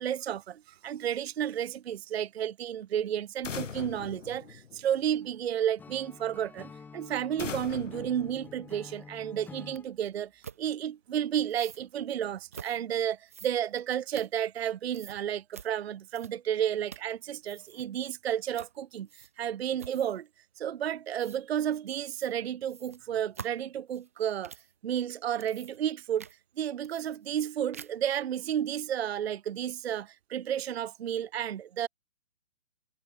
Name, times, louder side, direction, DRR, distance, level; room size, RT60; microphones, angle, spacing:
voice 1, 0.0-20.3 20.6-24.5 24.8-26.3 26.6-31.9, right 10 dB, 55° right, 0.6 m, -32 dB
sound 1, 3.4-5.2 7.4-9.2, left 6 dB, 80° left, 2.1 m, -41 dB
Acoustic guitar / Strum, 5.8-9.9, left 5 dB, 5° left, 2.1 m, -49 dB
sound 2, 9.7-9.8 10.4-10.6 11.5-11.8 12.5-12.8 13.3-14.7 14.9-15.2 15.5-15.7 16.1-16.5 16.8-17.2 17.4-17.9 18.5-18.7 19.1-19.5 19.8-20.2 21.2-21.4 22.0-22.3 22.7-24.7 25.2-25.9 26.2-26.4 26.8-27.4 27.7-28.1, right 7 dB, 10° right, 0.5 m, -47 dB
hypercardioid pair, 160°, 37 cm